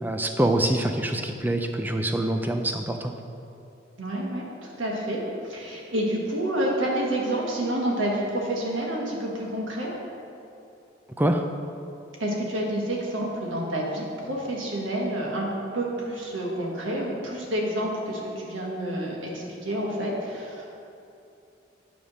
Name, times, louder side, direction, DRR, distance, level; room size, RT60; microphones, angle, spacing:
voice 1, 0.0-3.1 11.2-11.4, right 1 dB, 10° right, 5 dB, 0.4 m, -25 dB
voice 2, 4.0-9.9 12.2-20.6, right 1 dB, 85° right, -2 dB, 1.5 m, -29 dB
9.3 x 3.5 x 6.2 m, 2.8 s
head